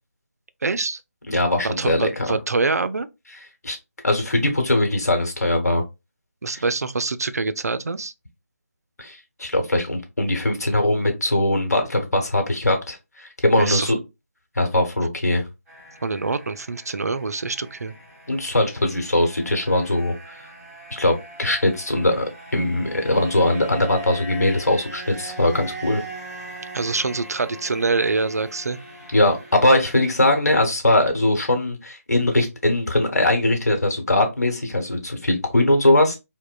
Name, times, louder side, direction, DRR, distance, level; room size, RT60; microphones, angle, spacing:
voice 1, 0.6-1.0 1.6-3.1 6.4-8.1 13.6-13.9 16.0-17.9 26.7-28.8, right 3 dB, 75° right, 0.3 m, -25 dB
voice 2, 1.3-2.4 3.6-3.8 4.0-5.8 6.5-6.6 9.0-14.0 14.6-15.4 18.3-20.1 20.9-22.3 22.5-26.0 29.1-36.2, left 1 dB, 80° left, 0.9 m, -21 dB
sound 1, 15.7-30.4, right 2 dB, ahead, 1.2 m, -41 dB
2.8 x 2.0 x 2.2 m
figure-of-eight pair, 160°, 9 cm